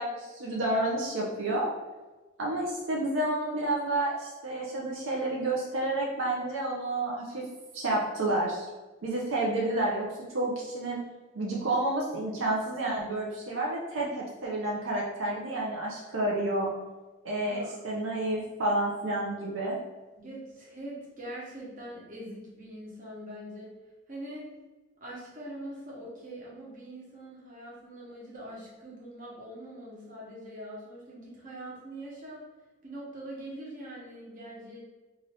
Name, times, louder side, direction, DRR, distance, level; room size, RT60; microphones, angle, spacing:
voice 1, 0.0-1.7 2.4-7.4 7.7-8.7 9.0-10.0 10.3-11.0 11.3-16.7 17.2-19.8, right 1 dB, 85° right, -3 dB, 0.6 m, -30 dB
voice 2, 17.4-17.8 20.2-23.7 24.1-24.4 25.0-32.4 32.8-34.8, right 1 dB, 45° right, -6 dB, 1.0 m, -43 dB
2.7 x 2.4 x 3.3 m, 1.2 s
head